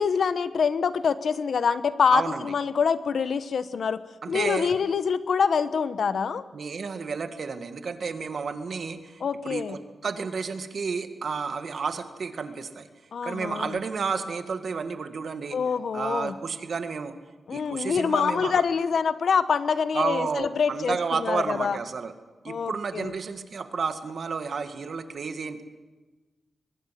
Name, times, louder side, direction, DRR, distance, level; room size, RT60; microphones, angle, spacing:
voice 1, 0.0-4.0 4.3-6.4 9.2-9.8 13.1-13.8 15.5-16.3 17.5-21.8 22.5-23.1, left 6 dB, 70° left, 13 dB, 1.1 m, -25 dB
voice 2, 2.1-2.5 4.2-4.7 6.5-12.9 13.2-15.6 15.9-17.2 17.5-18.6 19.9-22.1 22.4-25.6, right 5 dB, 65° right, 8 dB, 2.0 m, -31 dB
23.5 x 21.0 x 7.7 m, 1.3 s
cardioid pair, 90°, 0 cm